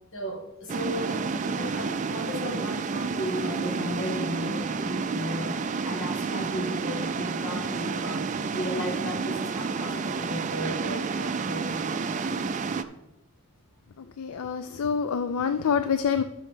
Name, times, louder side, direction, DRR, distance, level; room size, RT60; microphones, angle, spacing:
voice 1, 0.1-12.3, equal, 60° left, 3 dB, 1.7 m, -35 dB
sound 1, 0.7-12.8, right 4 dB, 35° right, 0.4 m, -30 dB
voice 2, 14.2-16.2, left 6 dB, 80° left, 9 dB, 0.4 m, -26 dB
13.0 x 6.3 x 3.6 m, 0.94 s
head